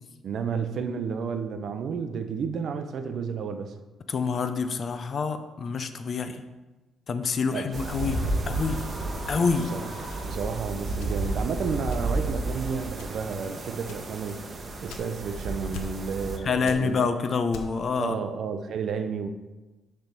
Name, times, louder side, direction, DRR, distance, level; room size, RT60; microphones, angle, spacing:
voice 1, 0.2-3.7 7.4-7.7 9.7-9.8 10.2-14.4 14.8-17.1 18.0-19.3, right 6 dB, 65° right, 9 dB, 0.6 m, -31 dB
voice 2, 4.1-6.4 7.1-8.8 9.3-9.7 16.4-18.2, left 5 dB, 50° left, 10 dB, 0.6 m, -27 dB
sound 1, 7.7-16.4, right 2 dB, 40° right, 0.9 m, -32 dB
sound 2, 8.3-11.0, right 1 dB, 10° right, 2.4 m, -44 dB
sound 3, 10.1-11.5 11.9-12.4 12.9-13.4 13.9-15.4 15.7-16.3 16.6-17.9, left 4 dB, 85° left, 0.7 m, -43 dB
6.6 x 3.4 x 5.9 m, 1.1 s
cardioid pair, 90°, 0 cm